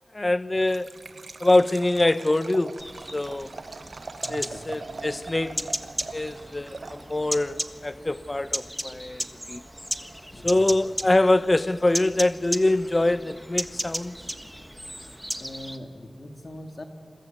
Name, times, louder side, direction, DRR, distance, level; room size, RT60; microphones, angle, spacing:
voice 1, 0.1-1.0 1.4-2.8 3.1-3.5 4.3-5.7 6.1-9.6 10.4-14.1, left 2 dB, 30° left, 0.6 m, -24 dB
Liquid, 0.5-7.4, right 3 dB, 65° right, 0.9 m, -42 dB
sound 1, 2.8-15.8, equal, ahead, 1.5 m, -35 dB
voice 2, 4.2-4.6 10.3-10.7 15.4-16.8, left 1 dB, 50° left, 3.0 m, -41 dB
28.0 x 22.0 x 9.5 m
wide cardioid pair, 85°, 0 cm